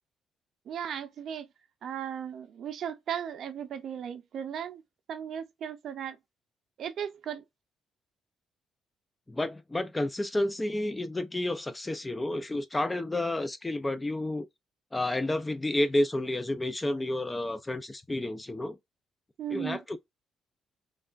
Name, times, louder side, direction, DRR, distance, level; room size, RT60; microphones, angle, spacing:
voice 1, 0.7-1.5 1.8-4.8 5.1-6.2 6.8-7.4 19.4-19.8, right 9 dB, 65° right, 0.6 m, -36 dB
voice 2, 9.3-14.5 14.9-18.8 19.5-20.0, left 1 dB, 15° left, 0.5 m, -30 dB
3.2 x 2.4 x 2.4 m
cardioid pair, 90°, 0 cm